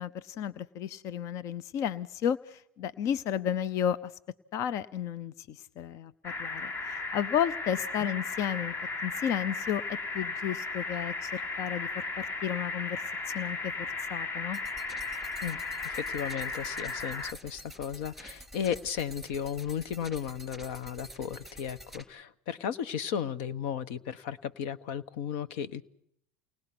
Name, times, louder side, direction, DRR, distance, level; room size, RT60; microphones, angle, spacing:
voice 1, 0.0-4.1 4.5-8.7 9.0-13.0 13.3-14.6, left 9 dB, 50° left, 19 dB, 0.8 m, -33 dB
sound 1, 6.2-17.3, left 3 dB, 30° left, 1.4 m, -35 dB
sound 2, 14.5-22.0, equal, 5° left, 3.1 m, -48 dB
voice 2, 15.4-25.8, left 8 dB, 70° left, 16 dB, 1.2 m, -35 dB
29.0 x 19.5 x 6.1 m, 0.71 s
hypercardioid pair, 90°, 7 cm